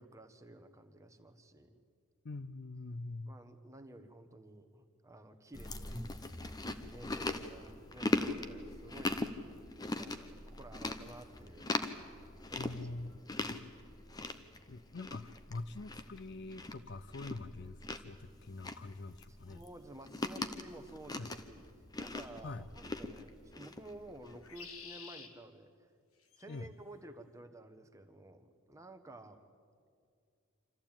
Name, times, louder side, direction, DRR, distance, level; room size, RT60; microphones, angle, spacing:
voice 1, 0.0-1.8 3.3-6.4 6.8-9.3 9.9-11.8 12.1-12.9 19.5-21.7 22.0-25.9 26.4-29.4, right 1 dB, 15° right, 7 dB, 1.1 m, -53 dB
voice 2, 2.2-3.4 12.5-13.7 14.7-19.6 21.2-21.3 22.4-22.6 26.5-26.7, left 2 dB, 55° left, 14 dB, 0.5 m, -44 dB
Chewing mastication, 5.5-24.5, left 2 dB, 20° left, 0.8 m, -40 dB
sound 1, 19.6-19.7 22.2-22.5 24.3-25.3 26.2-26.7, left 5 dB, 90° left, 1.8 m, -51 dB
26.5 x 14.0 x 8.9 m, 2.3 s
head